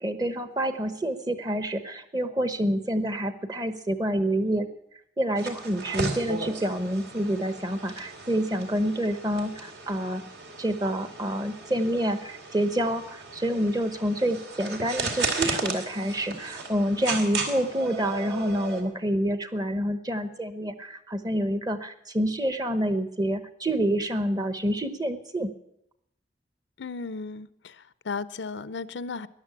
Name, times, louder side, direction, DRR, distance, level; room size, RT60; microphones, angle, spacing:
voice 1, 0.0-4.7 5.2-10.2 10.6-25.5, right 1 dB, 20° right, 10 dB, 1.0 m, -27 dB
sound 1, 5.4-18.8, right 3 dB, 65° right, 2.5 m, -35 dB
voice 2, 26.8-29.3, left 4 dB, 90° left, 16 dB, 0.6 m, -35 dB
13.5 x 11.0 x 8.3 m, 0.79 s
head